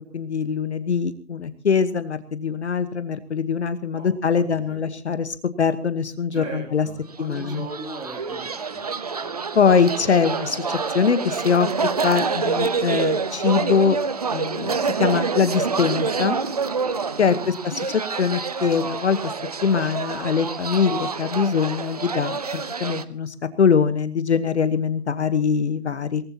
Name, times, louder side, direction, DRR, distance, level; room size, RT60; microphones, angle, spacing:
voice 1, 0.1-6.9 7.2-7.6 9.5-11.7 12.0-14.0 14.3-16.4 17.2-19.3 19.6-26.2, left 6 dB, 45° left, 12 dB, 1.2 m, -22 dB
voice 2, 4.4-4.8 6.3-8.8 9.1-9.3 17.3-17.5, right 3 dB, 10° right, 1 dB, 3.2 m, -38 dB
sound 1, 7.2-23.0, right 5 dB, 25° right, 0.8 m, -27 dB
24.5 x 19.5 x 2.9 m, 0.37 s
hypercardioid pair, 160°, 46 cm